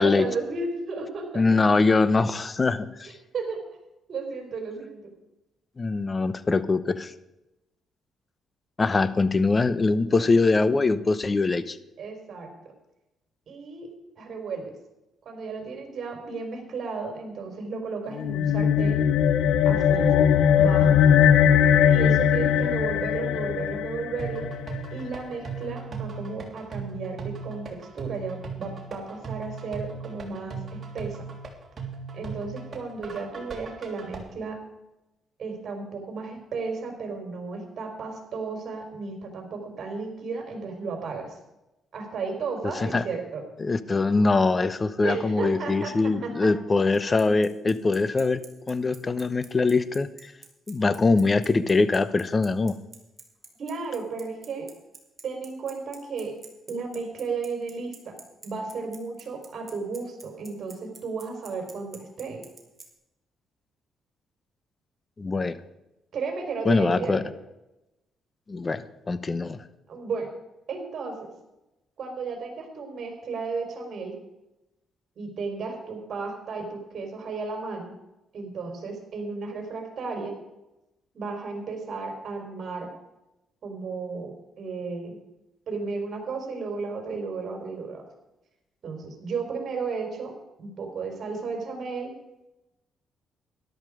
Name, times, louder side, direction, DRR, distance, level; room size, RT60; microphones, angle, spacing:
voice 1, 0.0-1.8 3.3-3.6 4.1-5.1 9.9-10.2 12.0-12.5 13.5-13.9 14.2-14.6 15.2-19.1 19.7-20.2 20.5-21.0 21.9-24.5 24.9-31.2 32.1-34.6 35.4-41.4 41.9-43.4 45.0-46.5 53.6-54.7 55.2-56.3 56.7-58.2 58.4-62.4 66.1-67.3 69.9-70.3 70.7-71.3 72.0-74.1 75.2-77.9 78.3-80.3 81.1-82.9 83.6-84.3 84.6-85.1 85.7-88.0 88.8-90.3 90.6-92.1, right 4 dB, 55° right, 3 dB, 4.4 m, -34 dB
voice 2, 1.3-3.1 5.8-7.1 8.8-11.8 42.7-43.0 43.6-50.3 50.7-52.7 65.2-65.6 66.6-67.2 68.5-69.6, left 3 dB, 30° left, 14 dB, 0.9 m, -23 dB
sound 1, 18.1-24.8, left 8 dB, 80° left, 0.8 m, -20 dB
sound 2, 24.2-34.2, right 5 dB, 40° right, 3.3 m, -37 dB
Bicycle, 46.9-62.8, right 4 dB, 25° right, 3.0 m, -46 dB
13.0 x 11.5 x 5.0 m, 0.94 s
cardioid pair, 90°, 0 cm